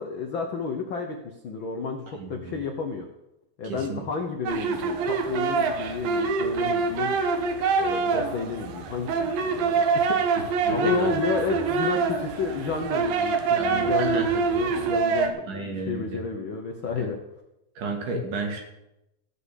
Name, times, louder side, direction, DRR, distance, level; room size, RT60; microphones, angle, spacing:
voice 1, 0.0-3.1 3.6-7.2 7.8-10.2 10.7-17.2, left 5 dB, 80° left, 3 dB, 1.1 m, -31 dB
voice 2, 2.1-2.6 3.6-4.0 10.6-11.4 13.5-14.3 15.5-16.2 17.0-17.1 17.8-18.6, right 3 dB, 65° right, 2 dB, 3.8 m, -33 dB
sound 1, 4.5-15.3, right 5 dB, 85° right, 3.1 m, -25 dB
16.5 x 5.7 x 8.4 m, 0.88 s
omnidirectional pair, 4.0 m